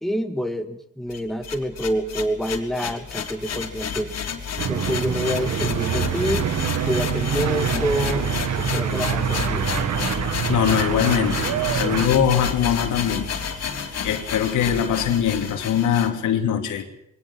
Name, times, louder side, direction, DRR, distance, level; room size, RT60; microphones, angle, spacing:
voice 1, 0.0-4.2 4.7-6.5 6.9-9.7, equal, ahead, 6 dB, 1.9 m, -27 dB
sound 1, 1.1-16.1, left 6 dB, 55° left, 3.6 m, -30 dB
sound 2, 4.6-12.1, right 8 dB, 65° right, 1.7 m, -25 dB
voice 2, 10.5-13.3 14.0-16.8, left 8 dB, 80° left, 5 dB, 3.0 m, -22 dB
22.0 x 18.5 x 7.6 m, 0.82 s
cardioid pair, 90°, 30 cm